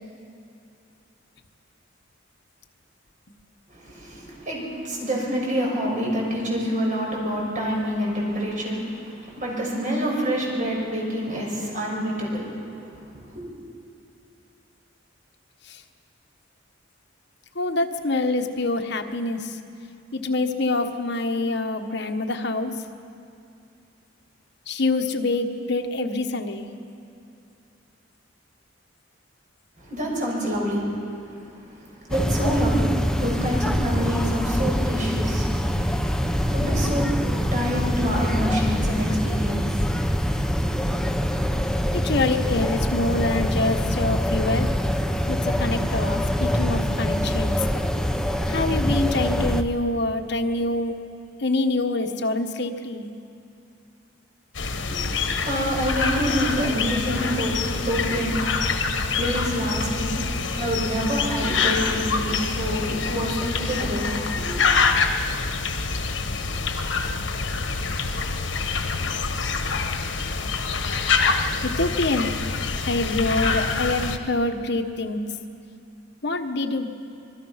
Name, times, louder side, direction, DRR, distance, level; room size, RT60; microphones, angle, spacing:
voice 1, 3.7-13.4 29.8-31.0 31.4-32.9 33.1-35.5 35.8-35.9 36.3-39.9 40.6-40.8 54.8-58.6 58.9-60.1 60.5-64.8, equal, 45° right, -2 dB, 6.3 m, -27 dB
voice 2, 17.5-19.6 20.1-22.8 24.7-26.7 41.9-44.7 45.3-47.6 48.5-51.0 51.4-53.1 71.6-72.3 72.8-75.2 76.2-76.9, left 2 dB, 65° left, 5 dB, 1.4 m, -25 dB
sound 1, 32.1-49.6, equal, 5° left, 0.8 m, -24 dB
sound 2, 54.5-74.2, left 4 dB, 85° left, 1.3 m, -26 dB
26.5 x 20.5 x 5.8 m, 2.6 s
head